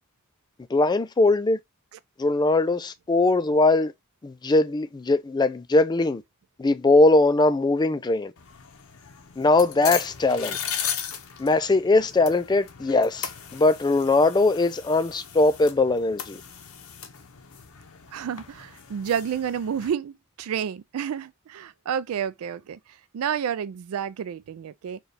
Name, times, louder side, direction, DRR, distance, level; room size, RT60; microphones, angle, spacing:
voice 1, 0.7-1.6 2.2-3.9 4.2-6.2 6.6-8.3 9.4-10.6 11.4-16.4, left 2 dB, 20° left, 0.4 m, -21 dB
sound 1, 8.4-19.9, left 8 dB, 85° left, 0.8 m, -37 dB
voice 2, 18.1-20.1 20.4-22.8 23.1-25.0, right 8 dB, 85° right, 0.3 m, -30 dB
4.6 x 2.3 x 3.2 m
head